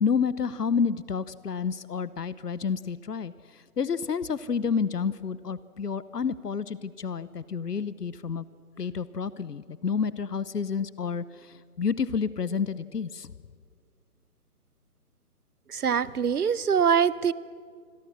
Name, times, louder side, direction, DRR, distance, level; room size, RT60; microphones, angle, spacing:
voice 1, 0.0-8.4 8.8-13.3, left 6 dB, 80° left, 17 dB, 1.0 m, -29 dB
voice 2, 15.7-17.3, right 7 dB, 70° right, 19 dB, 0.8 m, -23 dB
27.5 x 22.0 x 6.4 m, 2.1 s
figure-of-eight pair, 155°, 47 cm